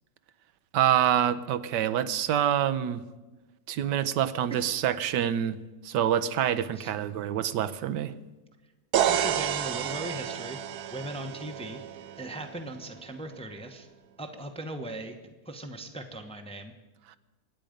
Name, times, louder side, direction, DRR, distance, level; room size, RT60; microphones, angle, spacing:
voice 1, 0.7-3.0 3.7-5.6 5.8-8.1, right 10 dB, 90° right, 14 dB, 1.3 m, -26 dB
sound 1, 8.9-12.8, right 10 dB, 70° right, 1.2 m, -30 dB
voice 2, 9.1-10.6 10.9-13.9 14.2-15.2 15.4-16.7, right 1 dB, 5° left, 4 dB, 0.8 m, -39 dB
23.5 x 9.0 x 5.2 m, 1.2 s
omnidirectional pair, 1.8 m